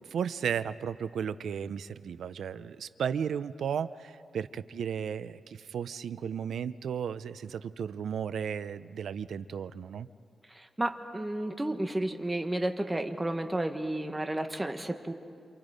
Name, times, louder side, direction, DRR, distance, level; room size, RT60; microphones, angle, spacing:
voice 1, 0.1-10.1, right 7 dB, 90° right, 14 dB, 0.6 m, -34 dB
voice 2, 10.5-15.1, right 1 dB, 15° right, 6 dB, 1.6 m, -32 dB
28.5 x 28.0 x 5.2 m, 2.5 s
wide cardioid pair, 120°, 0 cm